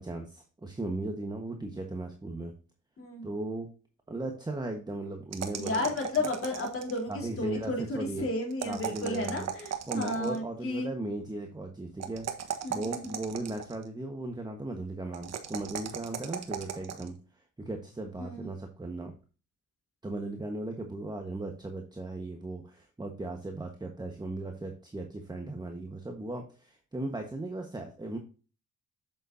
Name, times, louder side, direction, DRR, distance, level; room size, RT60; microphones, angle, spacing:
voice 1, 0.0-2.5 3.2-3.7 4.1-5.9 7.1-8.3 8.6-9.5 9.9-17.1 17.6-19.1 20.0-28.2, right 2 dB, 15° right, 3 dB, 1.3 m, -37 dB
voice 2, 3.0-3.3 5.6-10.9 12.6-13.2 18.2-18.5, left 2 dB, 45° left, 0 dB, 3.6 m, -33 dB
sound 1, 5.3-7.1 8.5-10.4 12.0-13.8 15.1-17.1, right 8 dB, 60° right, 1.4 m, -37 dB
8.2 x 7.2 x 2.7 m, 0.35 s
cardioid pair, 90°, 30 cm